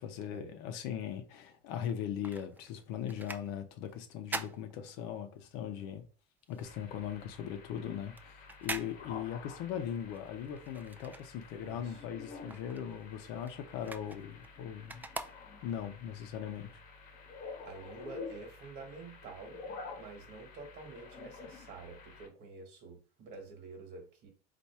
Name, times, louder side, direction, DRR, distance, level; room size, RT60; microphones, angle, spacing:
voice 1, 0.0-6.0 6.5-15.0 15.6-16.8, left 9 dB, 75° left, 0.7 m, -39 dB
sound 1, 1.9-5.5 5.8-11.8 12.1-15.9 16.4-16.5, right 3 dB, 10° right, 0.3 m, -45 dB
sound 2, 6.6-22.3, left 4 dB, 50° left, 1.1 m, -50 dB
voice 2, 11.6-12.0 17.6-19.6 20.0-24.3, right 4 dB, 55° right, 1.3 m, -49 dB
4.2 x 2.6 x 4.6 m
cardioid pair, 140°, 18 cm